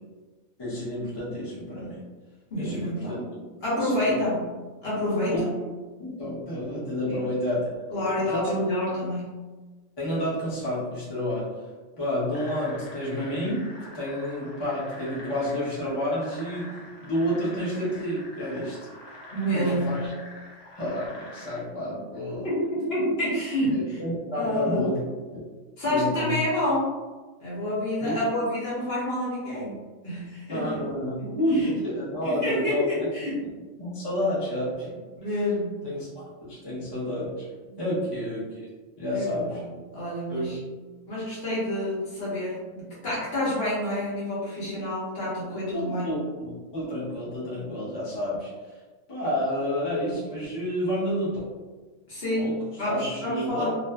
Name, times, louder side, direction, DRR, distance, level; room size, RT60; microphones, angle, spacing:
voice 1, 0.6-2.0 2.6-3.4 3.7-4.1 5.3-5.4 6.0-8.5 10.0-11.5 12.0-16.7 17.0-18.8 19.5-20.1 20.8-22.5 23.7-25.0 25.3-25.4 25.9-26.3 28.0-28.1 30.5-32.9 33.8-35.0 35.8-37.5 37.8-38.4 39.0-39.6 40.3-40.5 45.7-48.8 49.1-51.4 52.4-52.6 52.9-53.7, equal, 25° left, -9 dB, 0.7 m, -30 dB
voice 2, 2.5-3.2 3.6-4.5 4.8-5.6 7.1-7.2 7.9-9.3 19.3-19.9 22.4-24.0 24.3-24.9 25.8-26.9 27.4-29.8 30.0-30.8 31.2-31.7 32.2-33.4 35.2-35.9 37.7-38.0 39.1-39.5 39.9-40.6 41.1-46.1 52.1-53.7, left 1 dB, 50° left, -8 dB, 1.1 m, -28 dB
sound 1, 12.3-21.6, left 1 dB, 75° left, 0.3 m, -45 dB
2.5 x 2.5 x 2.2 m, 1.3 s
omnidirectional pair, 1.4 m